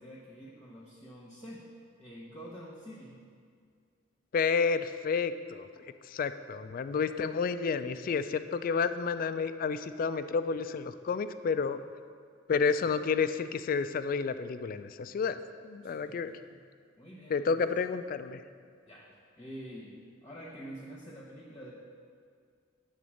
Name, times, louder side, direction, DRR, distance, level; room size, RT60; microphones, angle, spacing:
voice 1, 0.0-1.6 2.0-3.2 15.8-16.2 16.5-16.6 17.0-17.7 18.8-21.7, equal, 20° left, -5 dB, 1.0 m, -47 dB
voice 2, 4.3-5.7 6.1-11.8 12.5-15.4 15.6-16.3 17.3-18.4, left 5 dB, 50° left, 11 dB, 0.3 m, -30 dB
8.5 x 4.0 x 6.3 m, 2.1 s
head